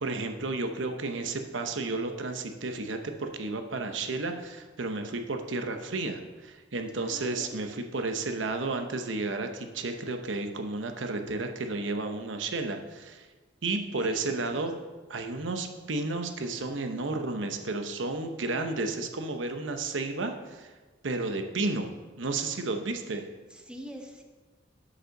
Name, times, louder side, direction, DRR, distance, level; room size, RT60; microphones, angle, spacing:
voice 1, 0.0-13.3 13.6-14.7 15.1-20.7 21.0-21.9 22.2-23.3, right 3 dB, 75° right, 6 dB, 0.8 m, -32 dB
voice 2, 7.0-7.7 14.1-14.6 23.5-24.2, equal, 5° right, 3 dB, 0.9 m, -44 dB
8.4 x 5.4 x 6.4 m, 1.3 s
head